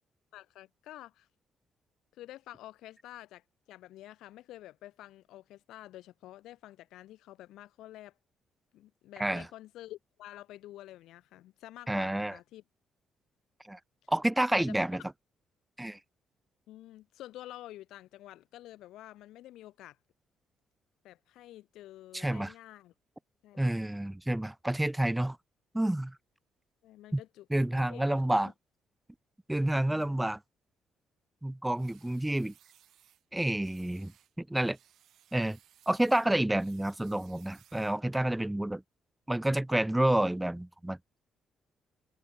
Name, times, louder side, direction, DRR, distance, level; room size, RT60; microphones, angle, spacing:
voice 1, 0.3-1.3 2.1-8.2 8.7-12.6 14.6-14.7 16.7-20.0 21.0-22.9 23.4-23.8 26.8-28.2 29.7-30.2, left 14 dB, 85° left, 1.0 m, -49 dB
voice 2, 11.9-12.4 13.6-13.8 14.1-15.0 15.8-16.0 22.1-22.5 23.6-25.4 25.7-26.2 27.1-27.2 27.5-28.5 29.5-30.4 31.4-32.5 33.3-34.1 34.4-34.8 35.3-35.6 35.9-38.8 39.3-41.0, right 1 dB, 10° right, 0.3 m, -29 dB
sound 1, 31.8-33.2 33.6-34.3 34.7-38.1, right 11 dB, 75° right, 1.0 m, -63 dB
open air
cardioid pair, 90°, 0 cm